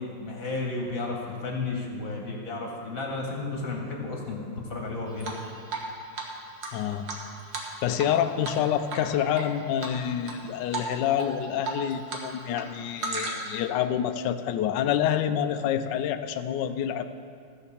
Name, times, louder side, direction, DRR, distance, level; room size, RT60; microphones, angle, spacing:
voice 1, 0.0-5.4, left 3 dB, 45° left, 0 dB, 1.5 m, -33 dB
Drip, 5.2-5.9 6.2-6.3 6.6-8.2 8.4-8.6 8.9-9.4 9.8-10.4 10.7-10.9 11.2-12.2 12.5-13.6, right 4 dB, 60° right, 1.9 m, -34 dB
voice 2, 6.7-7.1 7.8-17.1, left 9 dB, 75° left, 9 dB, 1.1 m, -27 dB
14.5 x 5.5 x 7.0 m, 2.3 s
omnidirectional pair, 2.3 m